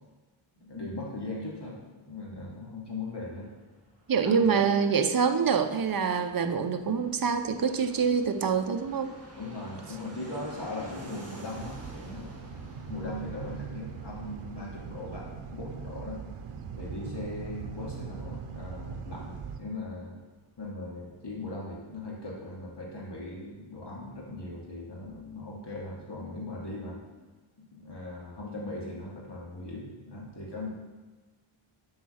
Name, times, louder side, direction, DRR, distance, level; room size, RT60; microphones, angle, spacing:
voice 1, 0.6-3.5 4.2-4.6 9.4-16.2 16.8-20.1 20.6-27.0 27.7-30.7, left 2 dB, 55° left, -3 dB, 2.4 m, -39 dB
Fixed-wing aircraft airplane, 3.1-21.4 21.7-21.8 22.0-22.7, right 1 dB, 30° right, 1.8 m, -51 dB
voice 2, 4.1-9.1, right 6 dB, 45° right, 7 dB, 0.7 m, -26 dB
sound 1, 11.5-19.6, right 6 dB, 85° right, 0.7 m, -41 dB
8.2 x 4.7 x 6.4 m, 1.3 s
wide cardioid pair, 100°, 49 cm